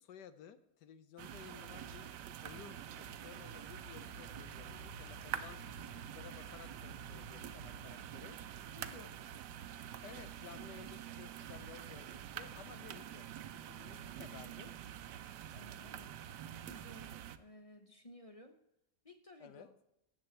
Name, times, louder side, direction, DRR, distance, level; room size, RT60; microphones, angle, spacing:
voice 1, 0.0-2.2 2.4-5.6 5.9-8.4 10.0-14.7 19.4-19.7, left 9 dB, 85° left, 13 dB, 1.4 m, -55 dB
sound 1, 1.2-17.4, right 9 dB, 90° right, 1.3 m, -47 dB
voice 2, 8.8-9.2 15.5-16.1 16.7-18.6 19.0-19.7, left 1 dB, 30° left, 6 dB, 0.7 m, -56 dB
13.5 x 7.9 x 4.4 m, 0.84 s
omnidirectional pair, 1.8 m